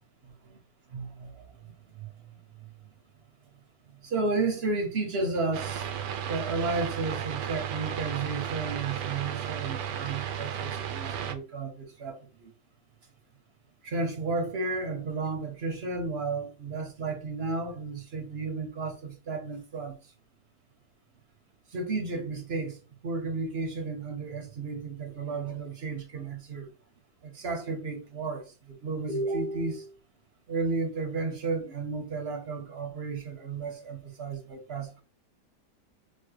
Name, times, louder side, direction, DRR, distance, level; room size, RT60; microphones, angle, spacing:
voice 1, 0.9-2.1 3.9-5.9 6.3-12.5 13.8-20.1 21.7-26.7 27.2-30.0 30.5-35.0, right 3 dB, 50° right, 0.9 m, -33 dB
sound 1, 5.5-11.3, right 9 dB, 85° right, 1.3 m, -34 dB
4.3 x 2.3 x 4.6 m
omnidirectional pair, 1.8 m